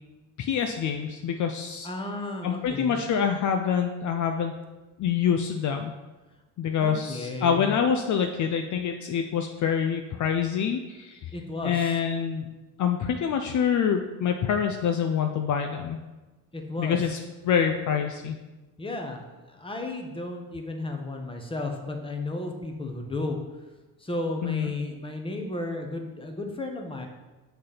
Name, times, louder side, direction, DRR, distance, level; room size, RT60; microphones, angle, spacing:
voice 1, 0.4-1.9 2.4-4.5 5.0-5.9 6.6-11.4 11.6-12.5 12.8-16.0 16.8-17.2 17.4-18.4 24.4-24.7, left 7 dB, 50° left, 5 dB, 0.6 m, -26 dB
voice 2, 1.8-3.0 6.8-7.7 11.3-12.0 16.5-17.0 18.8-23.4 24.0-27.1, left 2 dB, 15° left, 3 dB, 1.2 m, -33 dB
6.5 x 3.4 x 5.7 m, 1.2 s
supercardioid pair, 75°, 39 cm